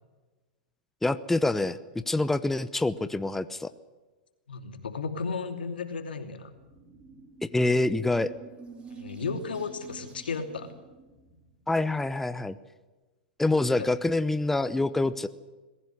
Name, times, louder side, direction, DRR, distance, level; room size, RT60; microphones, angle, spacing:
voice 1, 1.0-1.8 2.1-3.7 7.4-8.3 11.7-12.6 13.4-15.3, left 2 dB, 5° left, 13 dB, 0.8 m, -26 dB
voice 2, 4.5-6.5 8.9-10.7 13.8-13.9, left 5 dB, 85° left, 7 dB, 2.9 m, -34 dB
sound 1, 6.5-11.8, right 5 dB, 20° right, 5.1 m, -49 dB
22.0 x 15.5 x 9.8 m, 1.2 s
hypercardioid pair, 120°, 5 cm